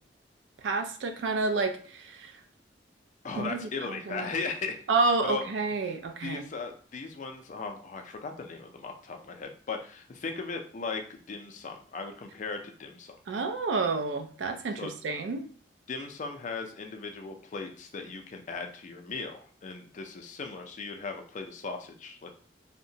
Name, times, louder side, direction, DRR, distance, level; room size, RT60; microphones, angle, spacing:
voice 1, 0.6-2.3 3.4-4.3 4.9-6.4 13.3-15.5, right 3 dB, 85° right, 7 dB, 0.4 m, -29 dB
voice 2, 3.2-4.8 5.2-5.4 5.8-5.9 6.2-13.2 14.8-14.9 15.9-22.3, left 4 dB, 45° left, 4 dB, 0.4 m, -37 dB
2.8 x 2.1 x 2.6 m, 0.43 s
head